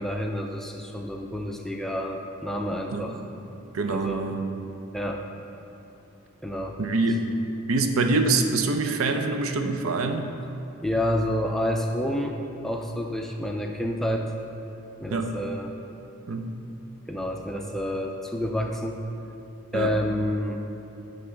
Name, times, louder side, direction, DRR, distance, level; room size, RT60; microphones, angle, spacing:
voice 1, 0.0-3.2 3.9-4.2 4.9-5.2 6.4-6.8 10.8-12.4 12.6-14.3 15.0-15.7 17.1-19.0 19.7-20.6, left 1 dB, ahead, 1 dB, 0.4 m, -29 dB
voice 2, 3.7-4.4 6.8-7.2 7.7-10.3 15.1-15.4 16.3-16.5 19.7-19.9, right 3 dB, 80° right, 6 dB, 0.6 m, -25 dB
9.5 x 3.4 x 6.3 m, 2.9 s
head